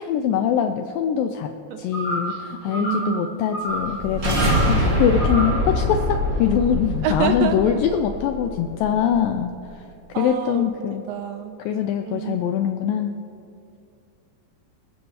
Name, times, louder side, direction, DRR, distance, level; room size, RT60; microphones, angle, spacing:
voice 1, 0.0-1.5 1.8-9.5 10.2-11.0 11.6-13.2, left 9 dB, 85° left, 6 dB, 2.0 m, -23 dB
sound 1, 1.9-2.4 2.7-3.2 3.5-3.9 4.4-4.8 5.2-5.6, right 1 dB, 30° left, 2.7 m, -28 dB
voice 2, 2.7-3.4 4.7-5.0 7.0-7.8 10.1-11.6 12.0-12.5, right 8 dB, 80° right, 6 dB, 2.2 m, -28 dB
sound 2, 3.8-8.9, equal, 40° right, 1.1 m, -24 dB
27.5 x 13.0 x 2.9 m, 2.6 s
omnidirectional pair, 4.6 m